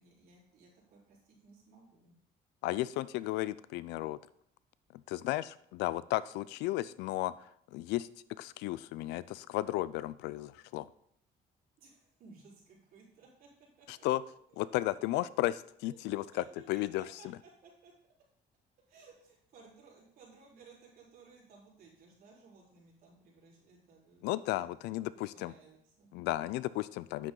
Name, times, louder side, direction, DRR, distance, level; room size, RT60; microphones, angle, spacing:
voice 1, 0.0-2.1 11.8-14.6 15.0-15.1 15.9-17.9 18.9-24.8 25.1-26.1, right 4 dB, 60° right, -4 dB, 4.2 m, -59 dB
voice 2, 2.6-4.2 5.1-8.1 8.4-10.9 13.9-14.2 14.6-17.1 24.2-25.5 26.1-27.3, left 16 dB, 90° left, 18 dB, 0.4 m, -34 dB
9.4 x 7.6 x 3.9 m, 0.69 s
cardioid pair, 110°, 17 cm